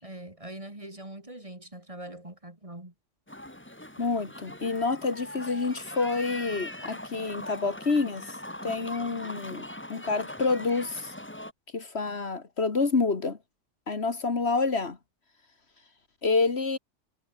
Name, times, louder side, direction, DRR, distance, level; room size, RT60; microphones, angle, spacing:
voice 1, 0.0-2.9 9.6-9.7, right 1 dB, 25° right, 3.3 m, -43 dB
sound 1, 3.3-11.5, left 1 dB, 10° left, 2.1 m, -41 dB
voice 2, 4.0-8.3 8.6-11.1 11.7-13.4 13.9-15.0 16.2-16.8, left 4 dB, 55° left, 2.1 m, -28 dB
omnidirectional pair, 1.3 m